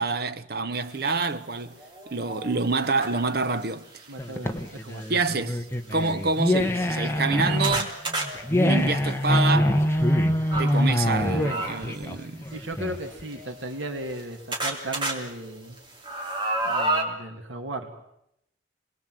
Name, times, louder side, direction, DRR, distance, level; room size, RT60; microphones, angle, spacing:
voice 1, 0.0-1.8 2.1-4.0 5.1-8.0 8.6-9.8 10.6-12.5, right 3 dB, 55° right, 1.1 m, -27 dB
sound 1, 1.1-1.2 1.7-3.7 4.7-5.1 5.7-5.8 6.1-6.2 6.8-10.7 11.4-12.0 13.0-14.2 14.5-15.1 15.6-17.0, right 2 dB, 25° right, 3.2 m, -32 dB
voice 2, 4.1-5.0 12.5-15.8 16.6-17.9, right 1 dB, 85° right, 2.5 m, -36 dB
sound 2, 4.2-13.2, left 1 dB, 15° left, 1.2 m, -24 dB
27.0 x 21.0 x 7.8 m
head